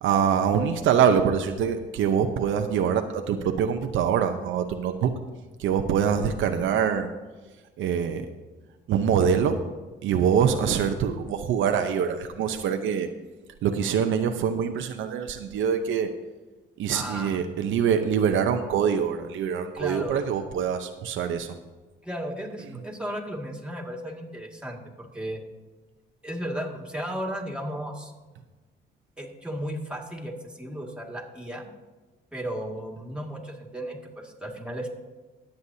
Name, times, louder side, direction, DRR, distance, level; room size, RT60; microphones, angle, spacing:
voice 1, 0.0-5.1 5.6-7.1 7.8-8.3 8.9-9.6 10.0-13.1 13.6-16.1 16.8-21.5, right 7 dB, 80° right, 6 dB, 0.8 m, -24 dB
voice 2, 16.9-17.4 19.7-20.2 22.0-25.4 26.2-28.1 29.2-31.6 32.3-34.9, equal, 5° right, 0 dB, 2.0 m, -35 dB
20.5 x 7.9 x 2.8 m, 1.2 s
cardioid pair, 90°, 20 cm